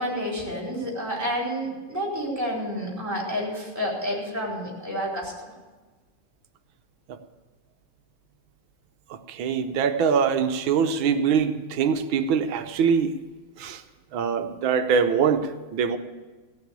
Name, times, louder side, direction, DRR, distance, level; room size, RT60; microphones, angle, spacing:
voice 1, 0.0-5.3, equal, 5° right, -4 dB, 3.7 m, -29 dB
voice 2, 9.1-13.2 13.6-13.8 14.1-16.0, right 6 dB, 70° right, 9 dB, 1.5 m, -23 dB
17.0 x 6.5 x 8.7 m, 1.3 s
omnidirectional pair, 2.4 m